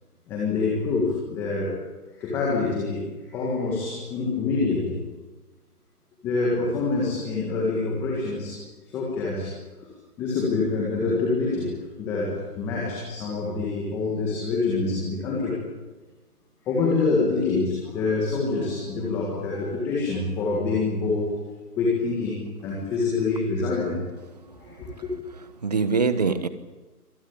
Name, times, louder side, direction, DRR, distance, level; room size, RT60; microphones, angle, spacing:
voice 1, 0.3-1.8 2.2-5.0 6.2-8.6 8.9-9.5 10.2-11.7 12.0-15.6 16.7-21.3 21.8-24.0 24.4-25.1, left 3 dB, 5° left, -3 dB, 1.8 m, -26 dB
voice 2, 24.7-25.0 25.6-26.5, right 4 dB, 25° right, 13 dB, 1.2 m, -24 dB
25.5 x 18.5 x 8.8 m, 1.2 s
hypercardioid pair, 165°, 46 cm